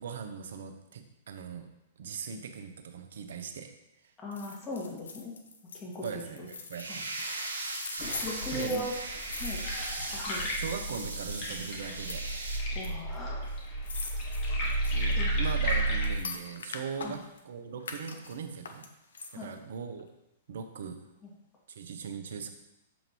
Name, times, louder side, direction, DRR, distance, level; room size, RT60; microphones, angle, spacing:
voice 1, 0.0-1.7 2.0-3.7 4.0-4.1 6.0-7.1 8.5-8.9 10.5-12.2 14.9-18.8 19.3-20.1 20.5-21.0 21.7-22.5, right 6 dB, 65° right, 6 dB, 0.8 m, -39 dB
voice 2, 4.2-5.3 5.7-6.1 6.4-6.5 6.9-7.0 8.0-8.9 9.3-9.6 10.1-10.5 12.7-13.5 15.2-15.3 17.0-17.2 19.3-19.5, left 1 dB, 20° left, -3 dB, 1.8 m, -38 dB
Keys Schlüssel, 4.3-10.5 10.8-11.3 11.8-12.9 13.1-13.2 13.4-17.4 17.8-19.6 20.0-20.1, left 4 dB, 75° left, 0.7 m, -44 dB
sound 1, 6.7-12.6, right 2 dB, 90° right, 1.1 m, -38 dB
sound 2, 8.0-16.2, right 1 dB, 45° left, 1.8 m, -32 dB
7.1 x 5.1 x 3.0 m, 0.87 s
figure-of-eight pair, 110°, 0 cm